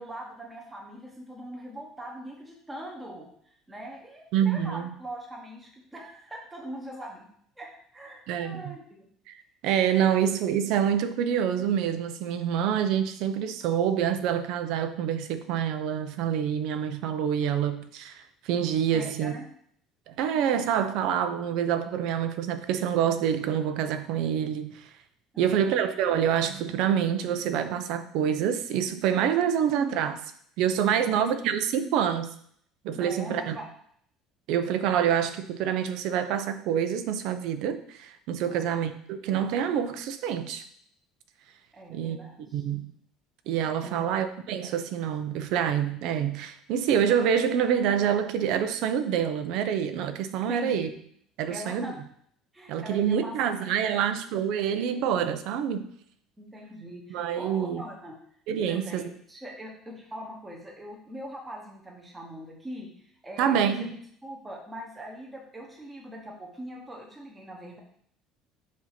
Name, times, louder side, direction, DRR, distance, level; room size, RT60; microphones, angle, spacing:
voice 1, 0.0-7.3 7.6-8.8 18.9-19.4 25.3-25.6 31.0-31.3 32.9-33.7 38.5-38.7 41.7-42.6 43.8-44.1 50.5-51.0 51.5-51.9 52.5-54.0 56.4-58.2 58.6-59.0 59.3-64.0 64.2-67.8, equal, 10° right, -1 dB, 1.0 m, -42 dB
voice 2, 4.3-4.9 8.3-8.8 9.3-9.4 9.6-19.3 20.1-24.8 25.4-30.2 30.6-32.3 32.8-33.6 34.5-40.6 41.9-42.2 42.5-42.9 43.5-50.9 51.4-51.9 52.7-55.9 57.1-57.8 58.5-59.1 63.4-63.9, right 8 dB, 65° right, 10 dB, 0.6 m, -26 dB
7.4 x 2.8 x 5.8 m, 0.64 s
cardioid pair, 155°, 0 cm